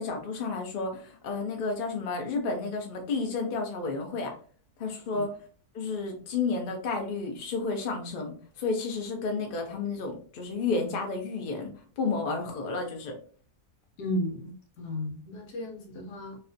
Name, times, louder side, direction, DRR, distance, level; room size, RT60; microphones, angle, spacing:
voice 1, 0.0-4.3 4.8-5.4 5.7-13.2, left 4 dB, 50° left, 2 dB, 0.7 m, -31 dB
voice 2, 14.0-16.4, left 1 dB, 85° left, 2 dB, 1.3 m, -34 dB
3.2 x 2.7 x 2.5 m, 0.43 s
omnidirectional pair, 1.7 m